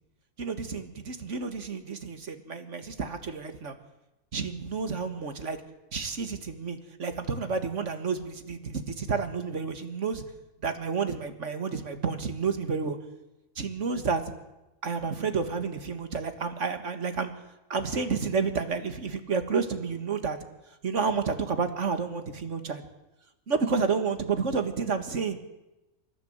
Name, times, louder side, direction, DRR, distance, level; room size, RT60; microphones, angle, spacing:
voice 1, 0.4-3.8 4.3-5.6 5.9-10.2 10.6-13.0 13.6-14.2 14.8-17.3 17.7-20.4 20.8-22.8 23.5-25.4, right 5 dB, 50° right, 8 dB, 2.0 m, -30 dB
27.0 x 14.0 x 8.0 m, 1.0 s
omnidirectional pair, 1.6 m